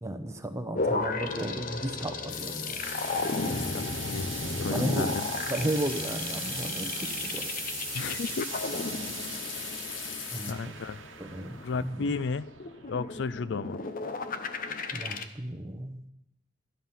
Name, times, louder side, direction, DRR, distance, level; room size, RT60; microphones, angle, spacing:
voice 1, 0.0-2.8 4.7-5.1 5.5-7.4 10.3-10.8 11.2-11.5 11.8-12.0 14.9-16.1, right 1 dB, 15° right, 7 dB, 0.9 m, -34 dB
sound 1, 0.7-15.2, left 3 dB, 45° left, 0.8 m, -35 dB
sound 2, 2.3-10.5, left 8 dB, 85° left, 1.0 m, -39 dB
sound 3, 2.8-13.9, right 9 dB, 80° right, 1.1 m, -42 dB
voice 2, 3.6-4.3 4.6-5.2 7.9-8.7 10.5-11.0 11.6-12.5 12.9-13.8, left 4 dB, 65° left, 16 dB, 0.4 m, -34 dB
13.5 x 9.6 x 5.6 m, 0.87 s
head